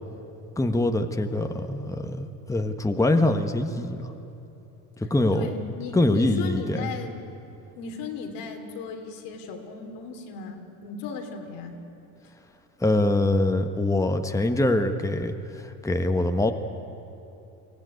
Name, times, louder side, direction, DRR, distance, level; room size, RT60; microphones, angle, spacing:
voice 1, 0.6-4.1 5.0-5.5 5.9-6.9 12.8-16.5, left 1 dB, 10° left, 6 dB, 1.4 m, -24 dB
voice 2, 5.3-7.2 7.8-11.8, left 5 dB, 80° left, 3 dB, 3.0 m, -36 dB
23.5 x 16.0 x 9.5 m, 2.9 s
supercardioid pair, 80°, 42 cm